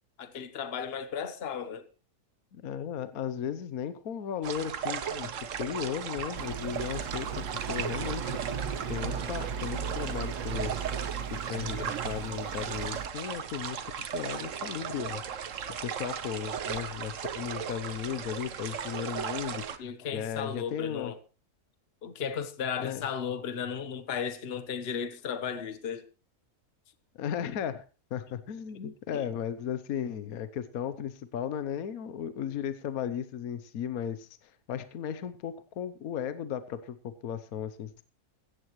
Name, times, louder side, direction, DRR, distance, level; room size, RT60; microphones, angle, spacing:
voice 1, 0.2-1.9 19.8-21.2 22.0-26.0 29.1-29.3, left 7 dB, 40° left, 1.3 m, -35 dB
voice 2, 2.5-10.7 11.3-15.4 15.8-21.1 22.8-23.1 27.1-27.8 28.1-38.0, left 9 dB, 65° left, 1.3 m, -36 dB
sound 1, 4.4-19.8, right 7 dB, 55° right, 1.3 m, -37 dB
sound 2, 5.1-5.8 6.1-12.2, right 4 dB, 40° right, 0.7 m, -44 dB
sound 3, 6.3-13.1, right 7 dB, 85° right, 1.7 m, -37 dB
17.0 x 14.5 x 3.1 m
omnidirectional pair, 1.7 m